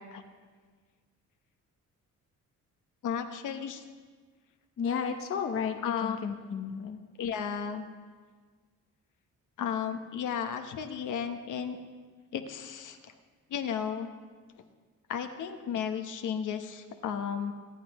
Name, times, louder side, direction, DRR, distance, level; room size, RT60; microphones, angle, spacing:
voice 1, 3.0-3.8 5.8-6.2 7.2-7.9 9.6-11.8 12.3-13.1 13.5-14.1 15.1-17.5, left 7 dB, 70° left, 6 dB, 1.0 m, -34 dB
voice 2, 4.8-7.0, left 6 dB, 45° left, 5 dB, 0.8 m, -33 dB
25.0 x 9.2 x 3.1 m, 1.5 s
cardioid pair, 120°, 31 cm